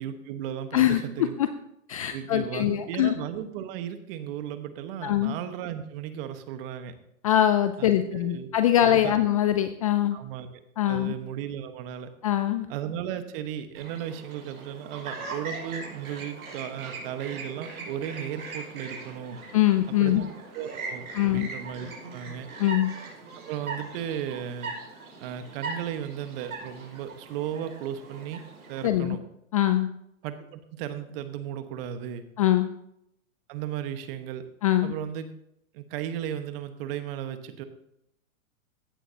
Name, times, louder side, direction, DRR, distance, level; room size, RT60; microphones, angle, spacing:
voice 1, 0.0-1.3 2.1-6.9 7.8-8.5 8.8-9.2 10.1-10.6 10.9-12.1 12.7-19.4 19.9-20.3 20.5-22.5 23.5-24.7 25.2-28.4 28.7-29.2 30.2-32.2 33.5-34.4 34.8-35.3 35.7-37.6, right 10 dB, 40° right, 9 dB, 1.4 m, -35 dB
voice 2, 0.7-1.5 1.9-3.1 5.0-5.3 7.2-10.2 10.8-11.1 12.2-12.7 19.5-20.2 21.1-21.5 22.6-22.9 28.8-29.2 29.5-29.9 32.4-32.7 34.6-34.9, left 12 dB, 30° left, 10 dB, 0.3 m, -23 dB
Chirp tweet, 13.7-28.9, right 3 dB, 75° right, 5.1 m, -40 dB
15.5 x 11.0 x 2.9 m, 0.77 s
hypercardioid pair, 125°, 42 cm